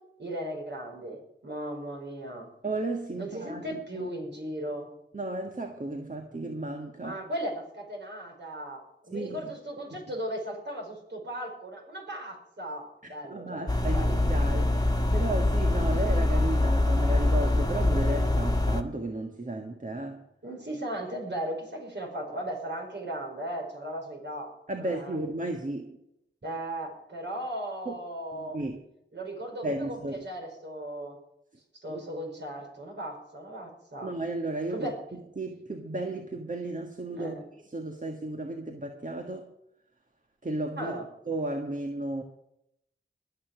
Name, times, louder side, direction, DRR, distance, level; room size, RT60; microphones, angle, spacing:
voice 1, 0.2-2.5 3.2-4.9 7.0-14.2 20.4-24.5 24.7-25.2 26.4-28.6 29.1-31.2 31.8-34.1 34.7-34.9 37.2-37.4 40.8-41.0, right 1 dB, 60° right, 0 dB, 5.2 m, -37 dB
voice 2, 2.6-4.1 5.1-7.2 9.1-9.4 13.2-20.2 24.7-26.0 27.8-28.0 28.3-28.8 29.6-30.2 31.9-32.0 34.0-37.4 37.7-39.5 40.4-40.9 41.3-42.2, right 2 dB, 40° right, 3 dB, 1.6 m, -34 dB
sound 1, 13.7-18.8, left 1 dB, 20° left, 1.5 m, -24 dB
20.0 x 7.1 x 6.3 m, 0.81 s
cardioid pair, 40°, 21 cm